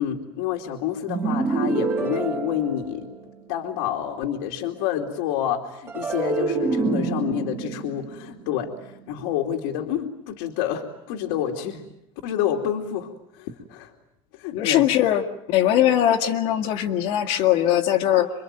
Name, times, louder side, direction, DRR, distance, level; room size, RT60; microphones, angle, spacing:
voice 1, 0.0-3.1 3.5-11.8 12.2-13.9 14.3-14.9, left 10 dB, 85° left, 0 dB, 2.9 m, -28 dB
sound 1, 1.1-3.5 5.9-9.2, right 4 dB, 20° right, 3.0 m, -27 dB
voice 2, 14.5-15.2 15.5-18.3, left 12 dB, 55° left, 5 dB, 2.1 m, -20 dB
27.5 x 24.0 x 9.0 m, 0.81 s
cardioid pair, 175°, 12 cm